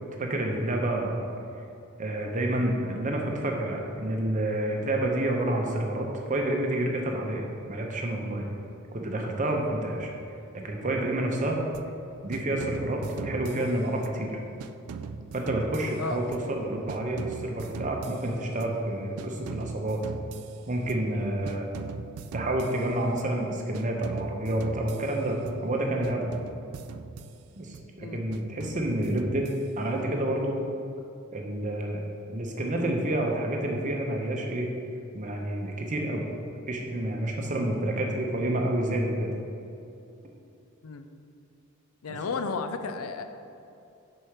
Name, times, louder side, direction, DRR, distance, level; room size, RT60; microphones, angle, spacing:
voice 1, 0.2-1.3 2.0-8.5 8.9-10.1 10.6-11.6 12.2-14.4 15.3-20.0 20.7-21.7 22.3-26.3 27.6-30.6 31.3-32.0 32.3-34.7 35.1-36.3 36.7-39.3, right 1 dB, 35° right, 1 dB, 0.7 m, -29 dB
sound 1, 11.7-12.0 12.3-14.3 14.6-16.6 16.9-18.8 19.2-21.2 21.5-23.4 23.7-25.7 26.0-27.9 28.3-30.0, right 5 dB, 85° right, 0.3 m, -41 dB
voice 2, 42.0-43.2, left 4 dB, 80° left, 8 dB, 0.5 m, -33 dB
4.9 x 4.6 x 5.7 m, 2.7 s
head